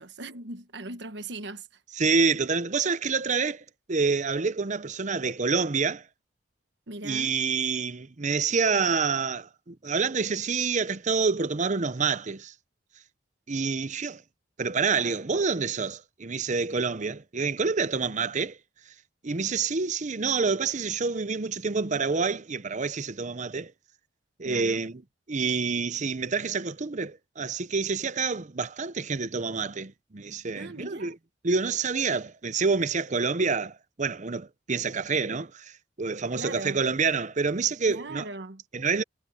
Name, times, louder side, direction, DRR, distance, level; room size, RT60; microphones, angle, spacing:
voice 1, 0.0-1.7 6.9-7.4 24.4-24.8 30.5-31.1 36.3-36.8 37.9-38.6, right 2 dB, 65° right, 1.3 m, -39 dB
voice 2, 2.0-6.0 7.0-12.5 13.5-14.2 14.6-18.6 19.2-23.7 24.4-25.0 25.3-31.1 31.4-35.7 36.0-38.3 38.7-39.0, right 4 dB, 40° right, 0.7 m, -27 dB
head